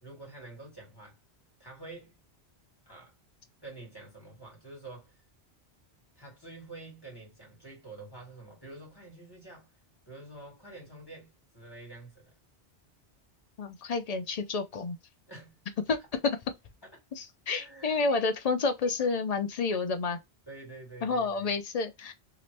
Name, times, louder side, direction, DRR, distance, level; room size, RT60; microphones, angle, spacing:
voice 1, 0.0-1.2 1.6-2.1 2.8-3.1 3.6-5.2 6.1-9.7 10.0-12.3 15.3-15.6 17.5-18.0 20.5-21.5, right 2 dB, 20° left, 1.7 m, -47 dB
voice 2, 13.6-15.0 15.9-16.0 17.2-20.2 21.0-22.1, left 4 dB, 50° left, 0.5 m, -30 dB
2.9 x 2.5 x 3.2 m
omnidirectional pair, 1.1 m